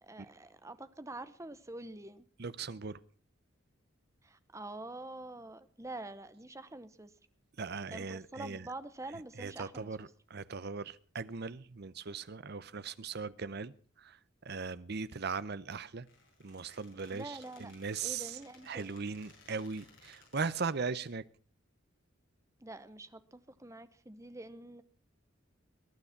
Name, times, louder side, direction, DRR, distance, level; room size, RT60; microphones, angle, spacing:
voice 1, 0.0-2.3 4.2-7.1 7.9-10.0 17.1-17.7 18.0-18.9 22.6-24.8, right 2 dB, 15° right, 0.9 m, -46 dB
voice 2, 2.4-3.0 7.6-8.7 9.4-14.2 14.4-16.1 16.4-18.4 18.7-21.2, right 5 dB, 55° right, 0.7 m, -39 dB
Squeak, 15.9-21.1, left 4 dB, 70° left, 7.5 m, -61 dB
21.5 x 9.8 x 5.9 m
head